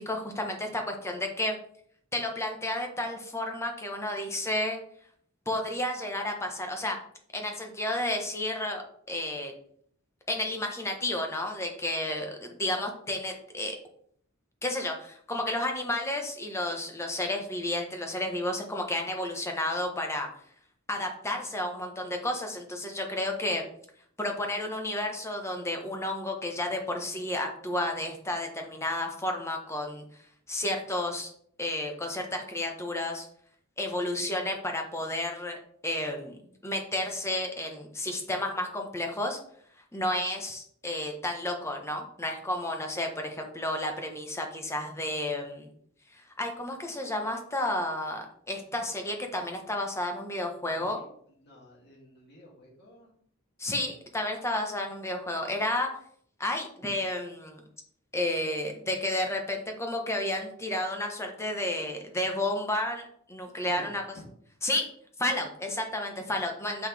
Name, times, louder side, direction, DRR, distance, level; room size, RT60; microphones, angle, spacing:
voice 1, 0.0-1.6 2.1-4.8 5.5-7.0 7.3-9.5 10.3-13.8 14.6-20.3 20.9-23.6 24.2-30.0 30.5-31.3 31.6-33.3 33.8-35.6 35.8-36.4 36.6-39.4 39.9-45.7 46.1-51.0 53.6-55.9 56.4-57.6 58.1-64.0 64.6-64.9 65.2-66.9, left 1 dB, 15° left, 3 dB, 1.1 m, -31 dB
voice 2, 50.6-51.1 51.4-53.1 63.6-64.2, left 1 dB, 50° left, -3 dB, 2.7 m, -49 dB
6.9 x 5.8 x 3.5 m, 0.63 s
head